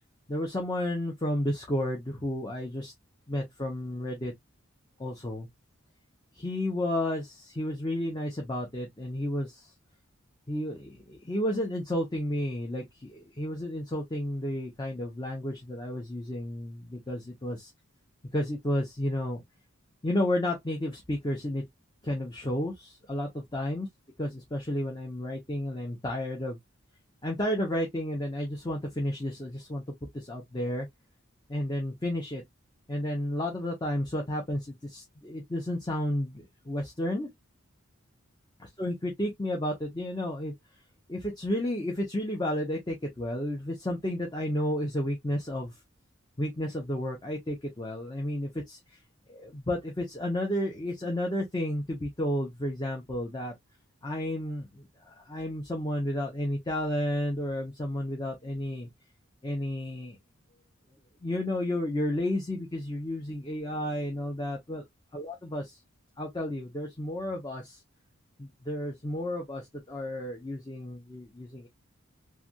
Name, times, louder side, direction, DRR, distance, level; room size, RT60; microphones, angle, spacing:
voice 1, 0.3-2.9 3.3-4.3 5.0-5.5 6.4-9.5 10.5-12.8 13.1-17.7 18.3-19.4 20.0-21.6 22.0-23.9 24.2-26.6 27.2-29.8 30.3-30.9 31.5-32.4 32.9-37.3 38.8-40.5 41.1-45.7 46.4-48.8 49.3-53.5 54.0-54.7 55.3-58.9 59.4-60.2 61.2-64.8 65.1-65.7 66.2-67.6 68.4-69.6 69.9-71.7, left 1 dB, 20° left, 0.8 m, -32 dB
3.2 x 2.3 x 2.6 m
head